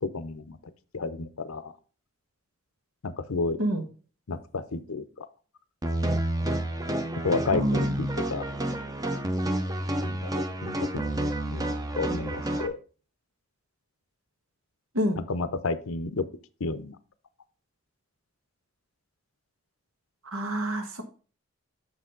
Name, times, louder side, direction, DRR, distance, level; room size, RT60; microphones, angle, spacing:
voice 1, 0.0-0.6 0.9-1.7 3.0-3.6 4.3-5.3 7.2-8.5 10.0-10.3 10.6-11.1 11.5-11.6 12.0-12.8 15.2-16.2 16.6-17.0, left 3 dB, 80° left, 13 dB, 0.7 m, -31 dB
sound 1, 5.8-12.7, right 1 dB, 15° right, 0.6 m, -29 dB
voice 2, 7.5-7.9 14.9-15.2 20.3-21.0, equal, 80° right, 7 dB, 1.4 m, -28 dB
6.3 x 6.1 x 3.9 m, 0.38 s
head